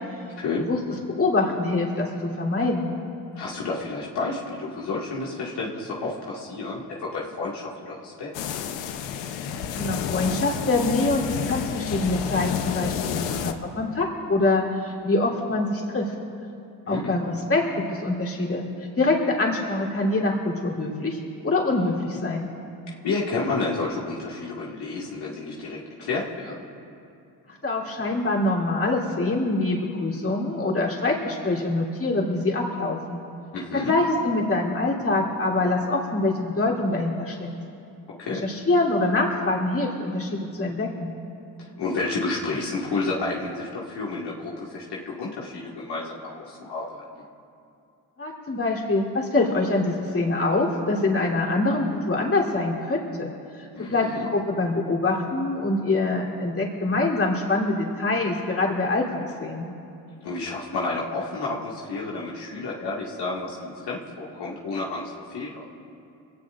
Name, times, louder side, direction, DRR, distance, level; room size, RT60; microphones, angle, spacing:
voice 1, 0.4-0.7 3.4-8.3 13.1-13.4 16.9-17.1 23.0-26.5 33.5-33.9 38.2-38.5 41.8-47.0 53.7-54.3 60.2-65.6, left 3 dB, 70° left, -5 dB, 2.2 m, -30 dB
voice 2, 1.1-2.9 9.5-16.1 16.9-17.6 17.9-18.7 19.0-22.5 27.6-33.2 33.7-37.5 38.3-41.1 48.2-59.7, left 2 dB, 30° left, -3 dB, 3.4 m, -25 dB
sound 1, 8.3-13.5, left 8 dB, 90° left, 1.0 m, -30 dB
23.0 x 18.0 x 2.6 m, 2.7 s
cardioid pair, 80°, 42 cm